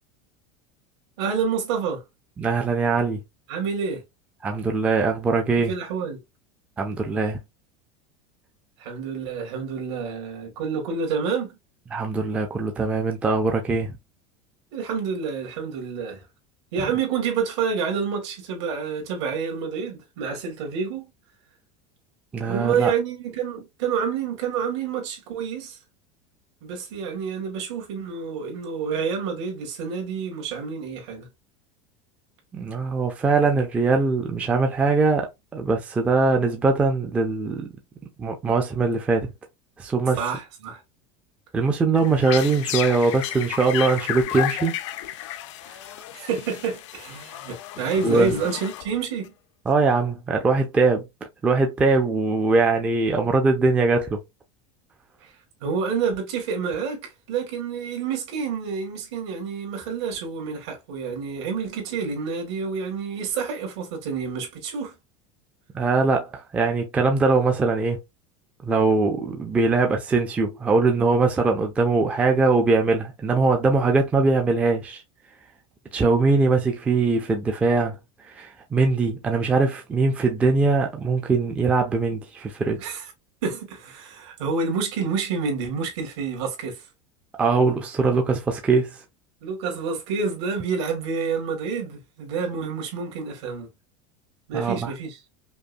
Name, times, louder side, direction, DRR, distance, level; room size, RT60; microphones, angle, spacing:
voice 1, 1.2-2.0 3.5-4.0 5.6-6.2 8.8-11.6 14.7-16.2 16.7-21.0 22.4-25.8 26.6-31.3 40.2-40.8 46.1-49.3 55.2-55.3 55.6-64.9 82.8-83.0 83.4-86.8 89.4-93.7 94.5-95.2, right 6 dB, 70° right, 1.7 m, -28 dB
voice 2, 2.4-3.2 4.4-5.7 6.8-7.4 11.9-13.9 16.8-16.9 22.3-22.9 32.5-37.7 38.2-39.3 39.8-40.2 41.5-44.8 48.0-48.3 49.7-51.0 51.4-54.2 65.7-68.0 68.6-75.0 75.9-78.0 78.2-82.8 87.4-89.0 94.5-94.9, right 3 dB, 10° right, 0.3 m, -21 dB
sound 1, 42.0-49.3, left 13 dB, 80° left, 0.5 m, -33 dB
5.1 x 2.0 x 2.5 m
supercardioid pair, 175°, 15 cm